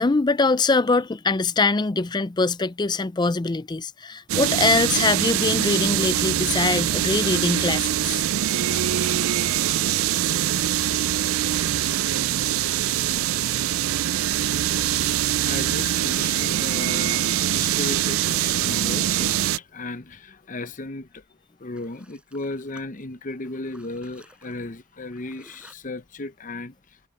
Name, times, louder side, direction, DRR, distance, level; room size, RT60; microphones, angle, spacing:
voice 1, 0.0-8.3, left 3 dB, 20° left, 0.4 m, -23 dB
sound 1, 4.3-19.6, right 11 dB, 90° right, 0.4 m, -23 dB
voice 2, 15.5-27.0, left 2 dB, 40° left, 0.8 m, -35 dB
sound 2, 19.7-19.8 21.4-25.7, right 1 dB, 5° right, 5.6 m, -54 dB
head